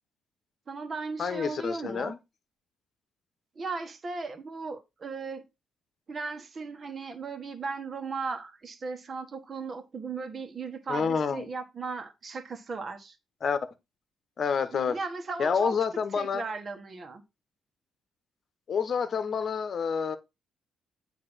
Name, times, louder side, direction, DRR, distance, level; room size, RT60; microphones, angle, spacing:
voice 1, 0.7-2.1 3.5-5.4 6.1-13.2 14.7-15.8 16.1-17.2, right 4 dB, 40° right, 1.4 m, -37 dB
voice 2, 1.2-2.2 10.9-11.4 13.4-13.6 14.4-15.0 15.4-16.4 18.7-20.2, left 6 dB, 50° left, 1.1 m, -28 dB
8.6 x 3.0 x 6.2 m
cardioid pair, 90°, 0 cm